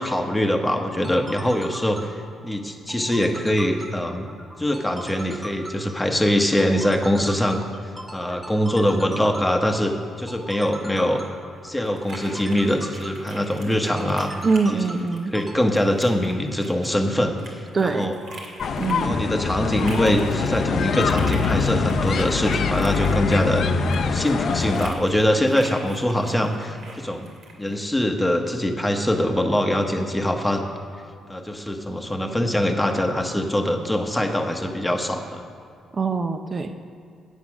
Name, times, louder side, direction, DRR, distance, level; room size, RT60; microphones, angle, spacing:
voice 1, 0.0-4.3 4.6-7.7 8.1-11.2 11.6-14.3 14.7-14.8 15.3-18.5 19.0-23.7 24.0-27.3 27.6-30.6 31.3-35.5, equal, 10° left, 3 dB, 1.1 m, -23 dB
sound 1, 0.8-15.6, right 1 dB, 15° right, 1.3 m, -40 dB
sound 2, 10.6-27.8, right 2 dB, 70° right, 2.3 m, -44 dB
voice 2, 14.4-15.3 17.7-18.1 18.8-19.2 35.9-36.8, right 4 dB, 35° right, 7 dB, 0.6 m, -23 dB
sound 3, 18.6-24.9, left 5 dB, 60° left, 0.6 m, -23 dB
8.7 x 8.3 x 6.0 m, 2.3 s
cardioid pair, 90°, 0 cm